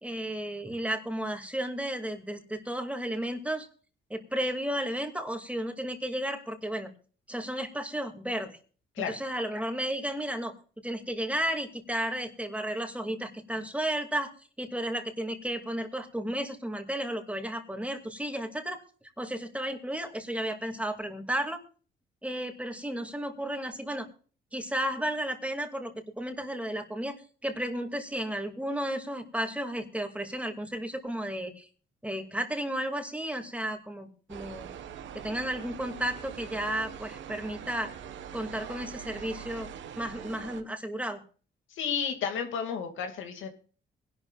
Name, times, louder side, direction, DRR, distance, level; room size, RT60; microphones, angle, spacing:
voice 1, 0.0-3.7 4.1-6.9 7.3-8.6 9.1-10.5 10.8-18.8 19.2-21.6 22.2-24.1 24.5-27.2 27.4-31.7 32.0-34.7 35.1-37.9 38.3-39.7 40.0-41.2, right 1 dB, 5° right, 5 dB, 2.4 m, -33 dB
sound 1, 34.3-40.6, right 8 dB, 70° right, 1.3 m, -43 dB
voice 2, 41.7-43.5, left 7 dB, 80° left, 5 dB, 2.4 m, -32 dB
22.5 x 12.0 x 2.5 m, 0.40 s
cardioid pair, 90°, 20 cm